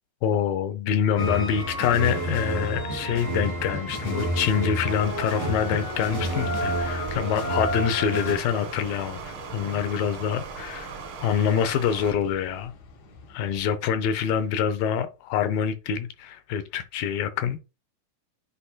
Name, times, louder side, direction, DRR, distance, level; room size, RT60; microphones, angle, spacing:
voice 1, 0.2-10.9 11.2-12.7 13.3-17.6, left 8 dB, 80° left, 2.4 m, -26 dB
sound 1, 1.2-13.7, left 1 dB, 60° left, 2.5 m, -42 dB
sound 2, 1.2-8.4, right 1 dB, 35° left, 1.2 m, -30 dB
Stream, 4.9-12.1, right 5 dB, 80° right, 1.1 m, -39 dB
9.9 x 4.2 x 2.2 m
omnidirectional pair, 4.3 m